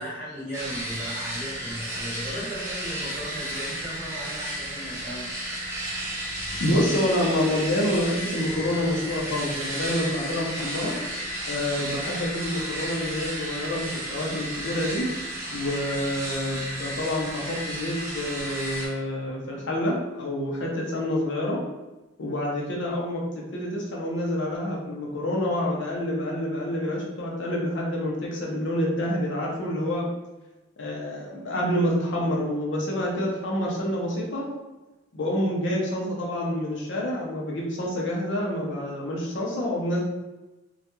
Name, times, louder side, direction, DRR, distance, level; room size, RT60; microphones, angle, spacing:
voice 1, 0.0-5.7, equal, 15° left, -14 dB, 1.0 m, -36 dB
sound 1, 0.5-18.9, right 1 dB, 15° right, 0.5 m, -33 dB
voice 2, 6.6-10.9 11.5-15.1 15.5-21.6 22.2-23.2 23.5-30.1 30.8-34.4 35.1-40.0, left 1 dB, 60° left, -2 dB, 0.5 m, -27 dB
2.3 x 2.2 x 2.9 m, 1.1 s
head